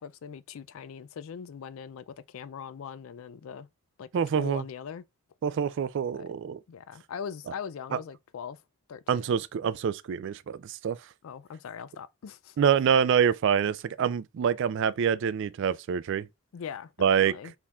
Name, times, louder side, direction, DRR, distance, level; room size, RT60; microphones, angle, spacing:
voice 1, 0.0-3.7 4.0-5.0 6.1-6.3 6.7-8.6 8.9-9.2 11.2-12.6 16.5-17.5, left 7 dB, 65° left, 0.3 m, -41 dB
voice 2, 4.1-4.6 5.4-6.6 7.9-8.0 9.1-11.0 12.6-16.3 17.0-17.3, right 7 dB, 55° right, 0.3 m, -26 dB
4.3 x 3.6 x 2.3 m
head